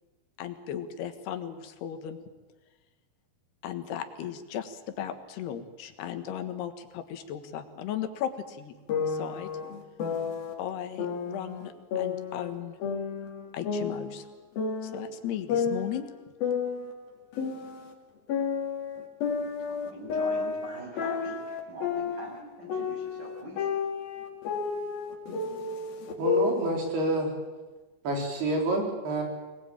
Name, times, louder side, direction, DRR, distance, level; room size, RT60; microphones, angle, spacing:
voice 1, 0.4-2.2 3.6-8.7 9.1-9.5 10.6-12.8 13.5-14.3 14.8-16.1, left 10 dB, 85° left, 8 dB, 3.6 m, -36 dB
sound 1, 8.9-10.5 11.0-12.6 12.8-15.1 15.5-17.9 18.3-22.4 22.7-26.7, left 5 dB, 65° left, 4.2 m, -31 dB
voice 2, 19.6-23.7, equal, 25° right, 0 dB, 7.2 m, -43 dB
voice 3, 26.2-27.3 28.0-29.2, right 2 dB, 80° right, 1 dB, 6.1 m, -28 dB
24.0 x 20.0 x 8.9 m, 1.3 s
omnidirectional pair, 4.6 m